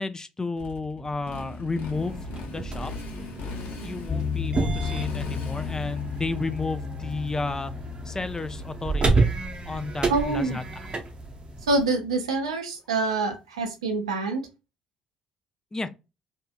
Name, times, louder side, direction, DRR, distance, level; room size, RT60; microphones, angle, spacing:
voice 1, 0.0-2.9 3.8-7.7 8.1-9.3 9.7-10.6 15.7-15.9, left 3 dB, 20° left, 0.4 m, -32 dB
Motorcycle, 0.6-9.2, left 3 dB, 65° left, 0.7 m, -39 dB
sound 1, 1.9-11.9, right 3 dB, 35° right, 0.6 m, -30 dB
sound 2, 4.1-12.2, left 7 dB, 35° left, 0.9 m, -36 dB
voice 2, 10.1-10.6 11.7-14.5, right 3 dB, 85° right, 0.4 m, -26 dB
2.7 x 2.3 x 2.2 m
hypercardioid pair, 50°, 3 cm